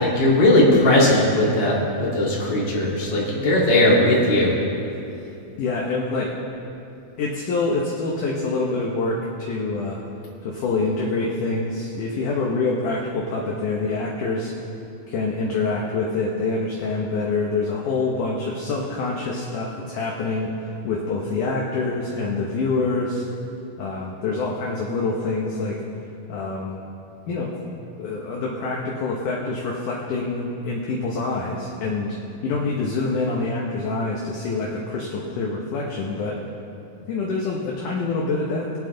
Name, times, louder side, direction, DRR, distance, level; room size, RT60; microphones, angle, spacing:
voice 1, 0.0-4.5, left 1 dB, 35° left, -5 dB, 2.7 m, -18 dB
voice 2, 5.6-6.3 7.2-10.0 10.4-14.5 15.1-23.2 23.8-25.8 26.3-26.8 27.3-27.5 28.0-32.2 32.4-36.4 37.1-38.8, left 3 dB, 65° left, -2 dB, 2.3 m, -26 dB
22.0 x 9.0 x 3.9 m, 2.8 s
omnidirectional pair, 4.4 m